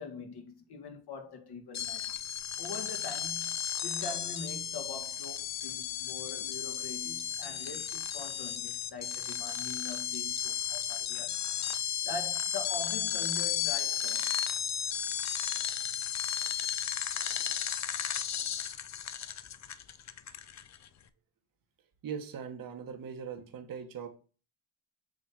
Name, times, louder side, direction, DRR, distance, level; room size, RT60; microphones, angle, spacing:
voice 1, 0.0-2.0 2.6-14.3, left 3 dB, 55° left, 1.7 m, -43 dB
sound 1, 1.7-20.9, left 9 dB, 35° left, 0.6 m, -34 dB
voice 2, 22.0-24.1, right 7 dB, 45° right, 1.2 m, -40 dB
7.6 x 2.7 x 5.8 m
cardioid pair, 90°, 47 cm